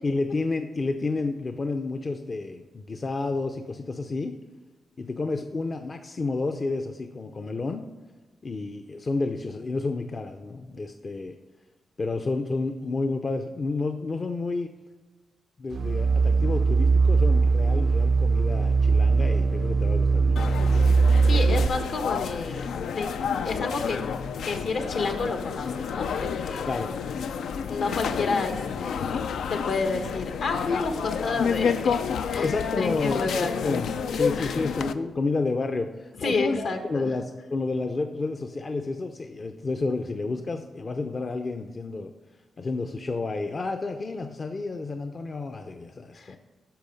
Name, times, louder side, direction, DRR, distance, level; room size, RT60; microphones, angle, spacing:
voice 1, 0.0-4.4 5.0-7.9 8.4-11.4 12.0-14.7 15.6-20.5 26.7-26.9 32.4-42.1 42.6-46.4, left 3 dB, 35° left, 6 dB, 0.6 m, -30 dB
sound 1, 15.7-21.7, right 4 dB, 55° right, 0.4 m, -21 dB
sound 2, 20.4-34.9, left 6 dB, 85° left, 0.5 m, -30 dB
voice 2, 21.2-23.1 23.4-24.0 24.4-26.7 27.7-29.2 29.5-32.0 32.3-33.8 34.4-34.7 36.2-37.1 46.1-46.4, left 4 dB, 65° left, 6 dB, 1.3 m, -30 dB
10.5 x 6.3 x 5.2 m, 1.2 s
cardioid pair, 105°, 0 cm